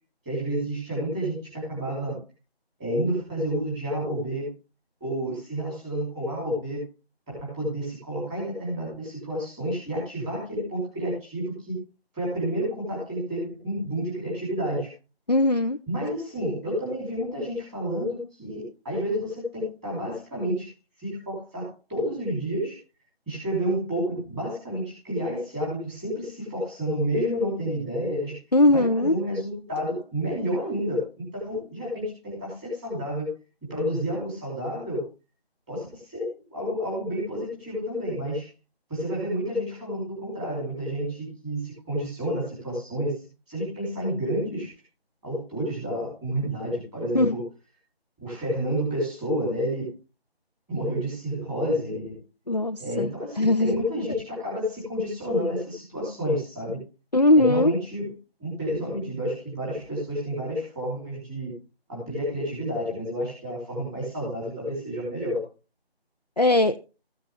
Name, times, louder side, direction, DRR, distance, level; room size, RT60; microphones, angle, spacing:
voice 1, 0.3-2.2 2.8-4.5 5.0-6.8 7.4-11.8 12.1-14.9 15.9-20.7 21.0-22.8 23.3-28.4 28.7-33.3 33.6-35.1 35.7-38.5 38.9-44.7 45.2-47.4 48.2-49.9 50.7-52.1 52.8-56.8 57.4-58.1 58.4-61.5 61.9-65.4, equal, 5° right, -6 dB, 3.3 m, -30 dB
voice 2, 15.3-15.8 28.5-29.1 47.1-47.4 52.5-53.1 53.4-53.8 57.1-57.7 66.4-66.8, left 2 dB, 40° left, 6 dB, 0.5 m, -20 dB
14.5 x 7.6 x 3.4 m, 0.32 s
figure-of-eight pair, 170°, 32 cm